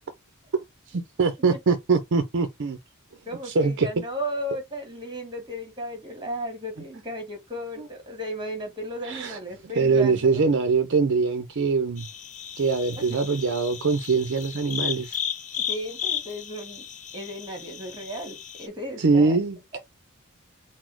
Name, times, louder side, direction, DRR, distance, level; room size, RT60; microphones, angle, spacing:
voice 1, 0.5-2.8 3.4-3.9 7.8-7.9 9.0-9.4 9.6-12.1 12.6-15.2 19.0-19.8, right 4 dB, 55° right, 0.5 m, -23 dB
voice 2, 3.3-10.4 13.0-13.1 15.7-16.8 17.1-19.4 19.7-19.8, equal, 20° right, 1.7 m, -35 dB
sound 1, 12.0-18.7, left 8 dB, 35° left, 0.4 m, -34 dB
4.1 x 2.0 x 4.4 m
head